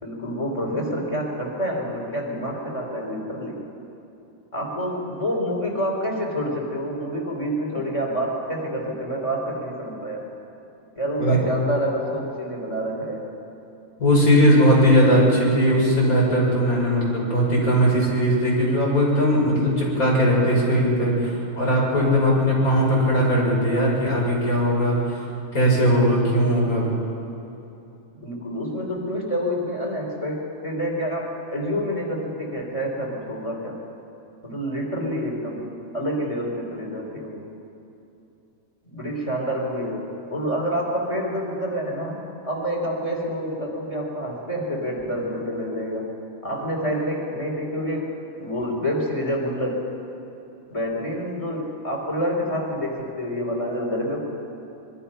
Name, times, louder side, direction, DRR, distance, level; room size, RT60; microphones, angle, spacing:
voice 1, 0.0-3.6 4.5-10.3 11.0-13.3 15.0-15.3 28.2-33.8 34.4-37.5 38.9-46.1 46.4-50.0 50.7-54.2, equal, 25° left, -2 dB, 4.0 m, -28 dB
voice 2, 14.0-25.3 25.5-26.9, equal, 85° left, -4 dB, 6.6 m, -19 dB
24.0 x 22.5 x 5.8 m, 2.8 s
omnidirectional pair, 1.5 m